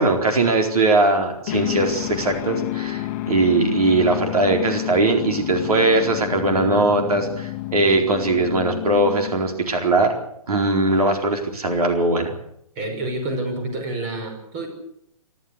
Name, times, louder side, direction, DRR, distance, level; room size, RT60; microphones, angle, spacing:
voice 1, 0.0-10.1 10.5-12.3, right 2 dB, 85° right, 3 dB, 4.4 m, -20 dB
sound 1, 1.5-9.7, left 16 dB, 30° left, 1.3 m, -29 dB
voice 2, 12.8-14.7, right 2 dB, 30° right, 5 dB, 5.6 m, -28 dB
26.0 x 13.0 x 8.2 m, 0.75 s
hypercardioid pair, 155°, 19 cm